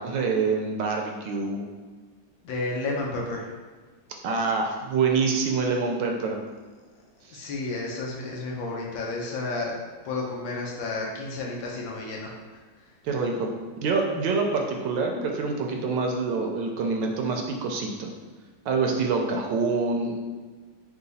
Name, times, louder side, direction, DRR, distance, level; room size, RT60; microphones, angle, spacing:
voice 1, 0.0-1.7 4.2-6.4 7.3-7.5 13.0-13.5 13.8-18.1 18.7-20.2, right 4 dB, 75° right, 2 dB, 1.2 m, -26 dB
voice 2, 2.4-3.5 7.3-9.8 10.0-12.3, left 3 dB, 80° left, -2 dB, 1.6 m, -31 dB
4.8 x 2.3 x 4.0 m, 1.4 s
omnidirectional pair, 2.1 m